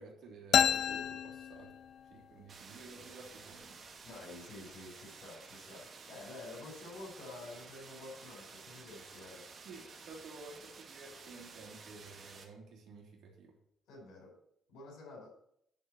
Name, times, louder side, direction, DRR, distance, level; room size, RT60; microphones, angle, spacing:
voice 1, 0.0-1.7 2.1-3.8 9.6-13.5, right 3 dB, 75° right, -1 dB, 3.1 m, -52 dB
sound 1, 0.5-2.2, left 9 dB, 70° left, 0.4 m, -30 dB
sound 2, 2.5-12.4, right 4 dB, 50° right, 2.1 m, -53 dB
voice 2, 4.0-9.4 13.9-14.3 14.7-15.3, left 2 dB, 85° left, -1 dB, 4.8 m, -49 dB
10.5 x 4.4 x 7.6 m, 0.73 s
cardioid pair, 90°, 0 cm